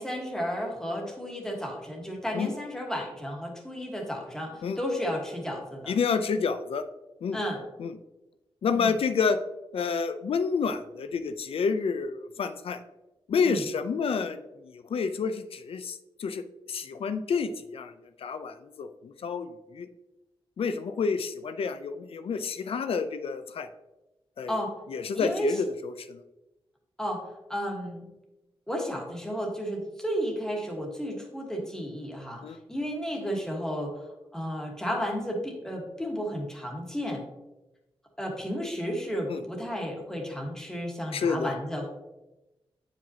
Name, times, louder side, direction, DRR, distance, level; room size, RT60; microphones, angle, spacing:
voice 1, 0.0-5.9 7.3-7.6 8.7-8.9 13.4-13.6 24.5-24.7 25.1-25.6 27.0-28.1 28.7-32.4 32.7-34.0 34.3-37.2 38.2-41.9, equal, 5° left, 0 dB, 1.3 m, -33 dB
voice 2, 5.9-6.8 7.2-7.4 7.8-7.9 8.6-9.4 9.7-12.8 13.3-16.4 16.7-17.9 18.2-19.9 20.6-23.7 24.4-24.5 24.9-26.2 32.4-32.6 39.3-39.4 41.1-41.5, left 5 dB, 75° left, 10 dB, 0.5 m, -29 dB
9.1 x 5.1 x 2.8 m, 1.0 s
wide cardioid pair, 155°, 10 cm